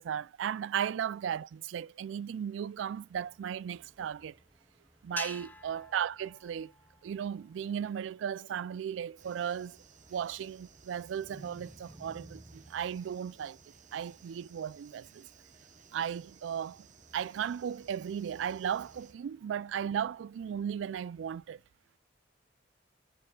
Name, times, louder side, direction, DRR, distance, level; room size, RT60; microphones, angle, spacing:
voice 1, 0.0-4.4 5.0-6.7 7.0-9.8 10.1-13.6 13.9-15.3 15.9-16.9 17.1-21.6, right 8 dB, 90° right, 0.3 m, -36 dB
sound 1, 2.9-21.5, right 1 dB, 20° right, 1.5 m, -60 dB
sound 2, 5.2-7.6, left 2 dB, 10° left, 0.6 m, -45 dB
sound 3, 9.2-19.1, right 5 dB, 45° right, 0.8 m, -59 dB
13.0 x 5.2 x 2.3 m
head